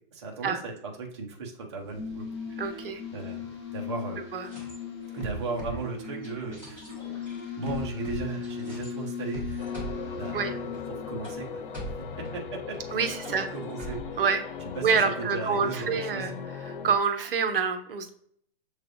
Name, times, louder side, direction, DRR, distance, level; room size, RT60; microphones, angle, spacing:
voice 1, 0.1-2.8 3.1-4.2 5.1-6.9 7.6-9.7 10.1-10.5 10.9-11.6 11.9-12.0 12.3-14.2 14.7-16.3, right 3 dB, 30° right, -1 dB, 0.6 m, -37 dB
sound 1, 1.8-12.2, left 6 dB, 25° left, 0.8 m, -38 dB
voice 2, 2.6-3.0 4.3-4.5 10.3-10.5 12.9-13.5 14.2-14.4 14.8-16.3 16.6-18.1, right 5 dB, 65° right, 8 dB, 0.7 m, -27 dB
sound 2, 4.4-8.9 9.3-14.7, right 1 dB, 5° left, 1.4 m, -41 dB
sound 3, 9.6-17.0, left 6 dB, 60° left, 0.4 m, -39 dB
6.6 x 3.2 x 2.5 m, 0.66 s
hypercardioid pair, 180°, 30 cm